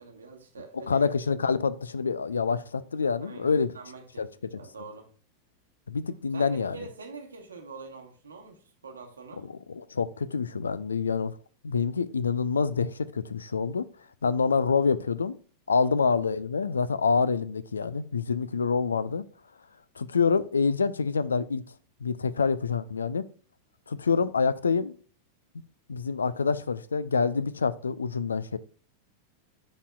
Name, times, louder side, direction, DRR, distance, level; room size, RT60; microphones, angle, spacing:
voice 1, 0.0-1.1 3.2-5.1 6.3-9.5 15.8-16.1, right 4 dB, 75° right, 1.4 m, -45 dB
voice 2, 0.9-3.7 4.2-4.3 5.9-6.8 9.7-11.3 11.6-13.9 14.2-15.4 15.7-19.2 20.0-21.6 22.0-23.2 23.9-24.9 25.9-28.6, left 5 dB, 75° left, 0.4 m, -26 dB
11.0 x 4.2 x 2.3 m
figure-of-eight pair, 90°, 0 cm